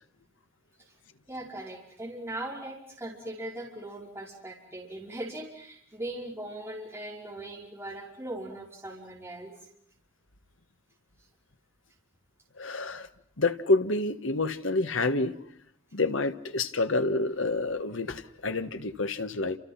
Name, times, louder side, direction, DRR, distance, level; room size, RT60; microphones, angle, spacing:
voice 1, 1.3-9.5, right 1 dB, 15° right, -2 dB, 5.3 m, -39 dB
voice 2, 12.6-13.1 13.4-15.3 15.9-19.6, left 2 dB, 70° left, 9 dB, 1.5 m, -28 dB
30.0 x 28.0 x 5.8 m, 0.65 s
head